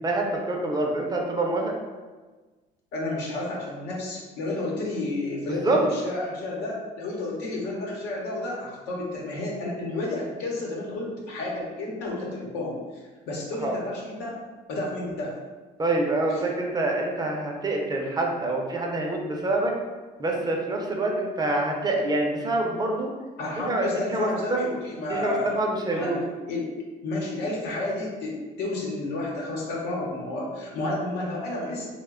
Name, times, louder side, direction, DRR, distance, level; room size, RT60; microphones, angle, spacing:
voice 1, 0.0-1.7 5.5-5.9 13.6-13.8 15.8-19.7 20.2-23.1 23.6-24.6 25.1-26.2, right 2 dB, 25° right, 0 dB, 0.5 m, -26 dB
voice 2, 2.9-12.8 13.3-14.4 14.7-15.3 16.3-16.4 23.4-25.6 25.9-26.1 26.5-26.7 27.0-31.9, left 2 dB, 85° left, -3 dB, 0.9 m, -31 dB
3.0 x 2.2 x 3.6 m, 1.3 s
cardioid pair, 110°, 17 cm